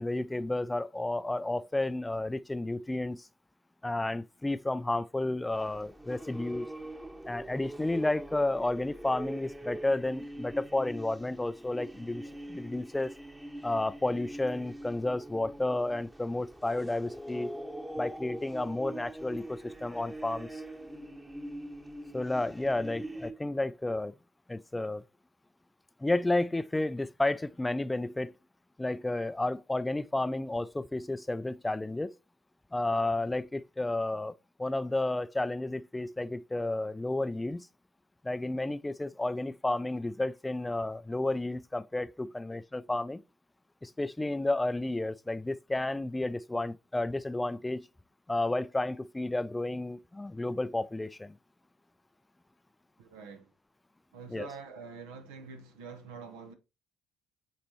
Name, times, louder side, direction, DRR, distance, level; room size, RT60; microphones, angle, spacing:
voice 1, 0.0-3.3 3.8-6.7 7.3-12.2 12.5-13.1 13.6-17.5 18.0-20.6 22.1-24.1 24.5-25.0 26.0-28.3 28.8-32.1 32.7-34.3 34.6-37.7 38.2-43.2 43.8-47.9 48.3-51.4 54.3-54.5, left 2 dB, 15° left, 0.4 m, -31 dB
sound 1, 5.5-23.3, right 1 dB, 10° right, 1.1 m, -43 dB
voice 2, 53.0-53.5 54.1-56.5, right 5 dB, 75° right, 1.1 m, -46 dB
8.4 x 4.2 x 2.9 m
hypercardioid pair, 55°, 0 cm